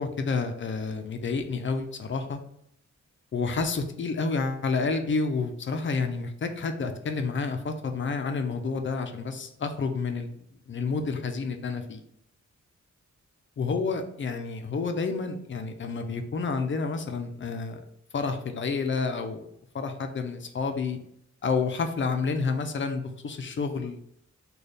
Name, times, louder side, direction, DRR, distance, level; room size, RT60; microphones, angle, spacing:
voice 1, 0.0-2.4 3.3-10.3 10.7-12.0 13.6-17.8 18.1-19.4 19.7-21.0 21.4-24.0, left 4 dB, 40° left, 7 dB, 0.4 m, -29 dB
3.3 x 2.3 x 4.0 m, 0.72 s
wide cardioid pair, 130°, 29 cm